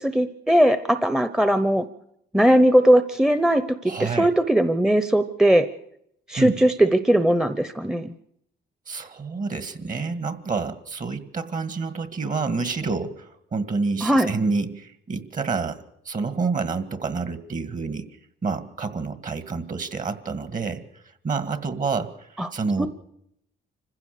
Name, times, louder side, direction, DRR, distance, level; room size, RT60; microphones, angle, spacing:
voice 1, 0.0-1.8 2.3-5.7 6.3-8.1 14.0-14.3 22.4-22.5 22.8-22.9, right 1 dB, 5° right, 11 dB, 0.9 m, -19 dB
voice 2, 3.9-4.3 6.4-6.5 8.9-18.1 18.4-20.8 21.2-22.9, right 4 dB, 40° right, 11 dB, 2.0 m, -28 dB
26.0 x 15.5 x 6.7 m, 0.75 s
cardioid pair, 90°, 20 cm